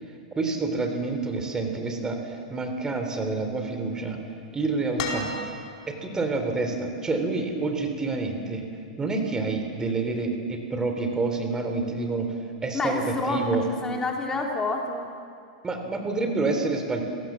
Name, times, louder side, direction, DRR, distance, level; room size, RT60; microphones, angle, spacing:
voice 1, 0.4-4.2 4.5-5.4 5.9-8.6 9.0-12.3 12.6-13.6 15.6-17.0, right 3 dB, 15° right, 5 dB, 3.3 m, -28 dB
sound 1, 5.0-6.0 7.5-7.6, left 3 dB, 60° left, 4.4 m, -33 dB
voice 2, 12.7-13.4 13.7-15.1, left 3 dB, 15° left, 1 dB, 2.8 m, -28 dB
28.0 x 17.5 x 7.4 m, 2.3 s
hypercardioid pair, 115°, 4 cm